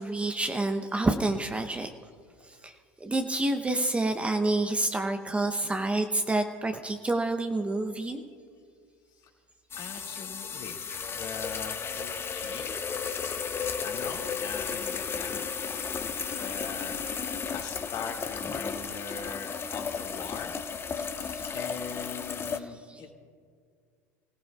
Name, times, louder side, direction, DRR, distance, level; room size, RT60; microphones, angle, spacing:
voice 1, 0.0-1.9 2.4-2.7 3.0-8.2 21.0-21.4 22.6-23.0, right 2 dB, 15° right, 6 dB, 0.8 m, -28 dB
sound 1, 9.7-22.6, left 6 dB, 25° left, 0.8 m, -34 dB
voice 2, 9.8-10.8 11.1-12.8 13.8-15.4 16.4-17.0 17.5-20.5 21.5-23.1, left 6 dB, 50° left, 0 dB, 2.4 m, -41 dB
29.5 x 17.5 x 2.4 m, 2.1 s
figure-of-eight pair, 75°, 9 cm